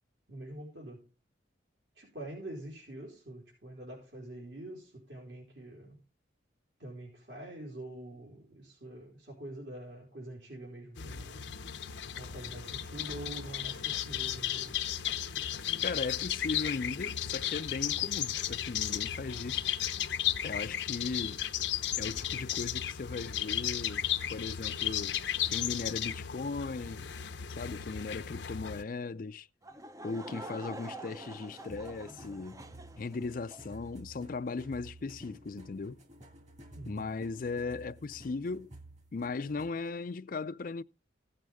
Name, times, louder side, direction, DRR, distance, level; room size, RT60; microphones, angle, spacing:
voice 1, 0.3-1.1 1.9-6.0 6.8-11.6 12.1-14.7 36.7-37.1, right 1 dB, 70° right, 4.7 m, -45 dB
sound 1, 11.0-28.8, left 10 dB, 80° left, 0.8 m, -34 dB
voice 2, 15.8-19.6 20.4-21.4 22.0-25.2 25.4-27.1 27.5-29.5 30.0-32.6 33.0-36.0 36.9-38.7 39.1-40.8, left 4 dB, 50° left, 0.4 m, -37 dB
Laughter / Crowd, 29.6-33.8, right 1 dB, 20° right, 0.5 m, -46 dB
sound 2, 31.7-39.9, right 1 dB, 40° right, 2.3 m, -52 dB
16.0 x 7.8 x 3.5 m
head